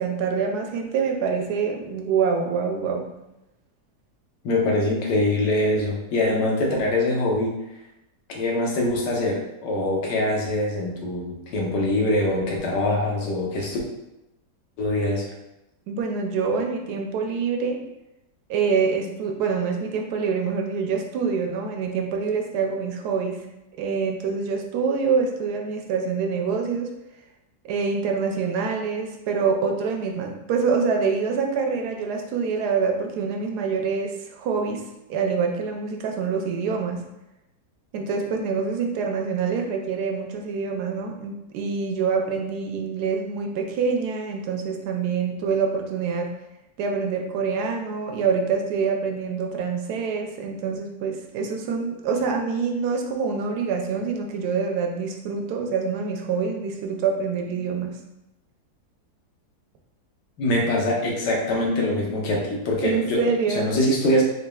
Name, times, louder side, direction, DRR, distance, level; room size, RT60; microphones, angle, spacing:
voice 1, 0.0-3.1 15.9-17.8 18.5-23.4 23.8-26.9 27.7-34.8 35.1-37.0 37.9-46.3 46.8-58.0 62.8-63.7, right 5 dB, 75° right, 2 dB, 1.1 m, -26 dB
voice 2, 4.4-7.6 8.3-13.8 14.8-15.2 60.4-63.2 63.6-64.2, left 1 dB, 85° left, -1 dB, 1.4 m, -23 dB
4.0 x 3.5 x 2.2 m, 0.91 s
omnidirectional pair, 1.8 m